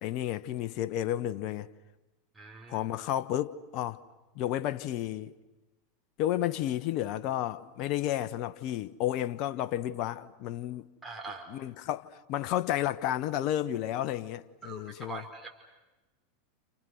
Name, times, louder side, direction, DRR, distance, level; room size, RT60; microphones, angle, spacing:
voice 1, 0.0-1.7 2.7-4.0 4.4-5.4 6.2-10.9 11.5-15.2, left 12 dB, 55° left, 1.0 m, -32 dB
voice 2, 2.3-2.9 11.0-11.5 14.6-15.6, right 3 dB, 10° right, 4.6 m, -43 dB
30.0 x 29.5 x 6.4 m
hypercardioid pair, 90°, 0 cm